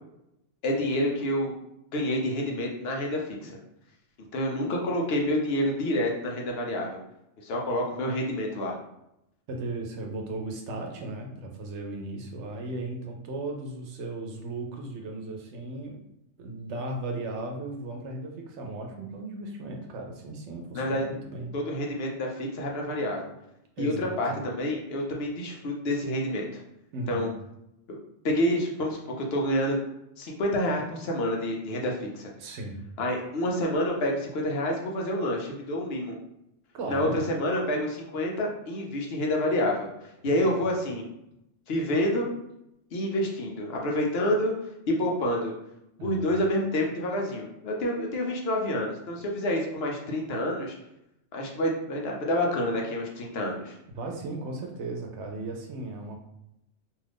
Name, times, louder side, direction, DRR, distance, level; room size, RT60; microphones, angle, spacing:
voice 1, 0.6-1.5 1.9-3.6 4.3-7.0 7.4-8.8 20.7-21.0 21.5-23.3 23.8-26.6 27.1-27.3 27.9-28.0 28.2-29.8 30.2-32.3 33.0-36.2 36.9-39.9 40.2-41.0 41.7-42.3 42.9-44.5 44.9-45.5 46.0-50.8 51.3-53.8, left 1 dB, 65° left, 0 dB, 0.8 m, -28 dB
voice 2, 9.5-16.0 16.4-21.6 23.8-24.2 26.9-27.3 32.4-32.8 36.7-37.2 40.2-40.4 46.0-46.2 53.9-56.2, right 2 dB, 75° right, 2 dB, 0.9 m, -36 dB
2.6 x 2.4 x 3.4 m, 0.83 s
omnidirectional pair, 1.2 m